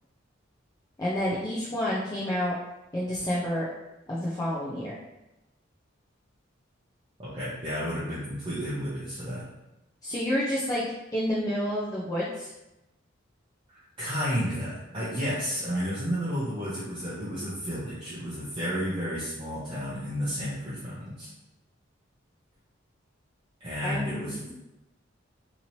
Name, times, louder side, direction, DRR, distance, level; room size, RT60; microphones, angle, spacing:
voice 1, 1.0-2.6 2.9-3.7 4.1-5.0 10.0-10.8 11.1-12.5 23.8-24.5, equal, 20° left, -7 dB, 0.4 m, -29 dB
voice 2, 7.2-9.5 13.7-21.3 23.6-24.4, equal, 25° right, -10 dB, 0.6 m, -32 dB
2.9 x 2.8 x 2.7 m, 0.95 s
head